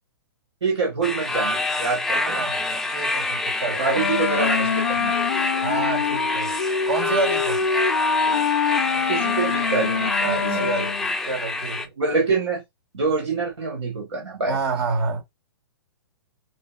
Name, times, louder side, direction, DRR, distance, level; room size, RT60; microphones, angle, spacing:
voice 1, 0.6-2.5 3.6-5.2 9.1-10.9 12.0-12.6 12.9-14.6, right 4 dB, 80° right, 1.3 m, -26 dB
sound 1, 1.0-11.9, left 2 dB, 5° left, 0.3 m, -27 dB
voice 2, 2.1-4.1 5.6-6.5 6.9-7.6 10.2-11.9 14.5-15.2, right 4 dB, 65° right, 1.8 m, -28 dB
Wind instrument woodwind instrument, 4.0-11.1, left 6 dB, 85° left, 0.5 m, -24 dB
5.6 x 2.0 x 2.4 m
hypercardioid pair, 125°, 14 cm